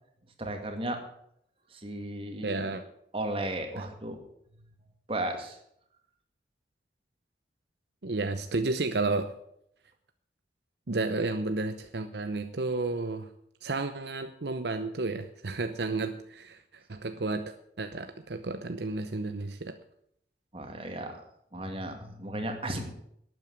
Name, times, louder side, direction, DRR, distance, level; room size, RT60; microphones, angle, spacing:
voice 1, 0.4-1.0 1.7-2.8 3.1-4.2 5.1-5.6 20.5-21.2 21.5-22.9, right 1 dB, 30° right, 4 dB, 2.3 m, -35 dB
voice 2, 2.4-2.8 3.8-3.9 8.0-9.3 10.9-13.3 13.6-16.6 16.9-19.7, right 3 dB, 70° right, 8 dB, 0.8 m, -32 dB
12.0 x 9.1 x 7.4 m, 0.72 s
head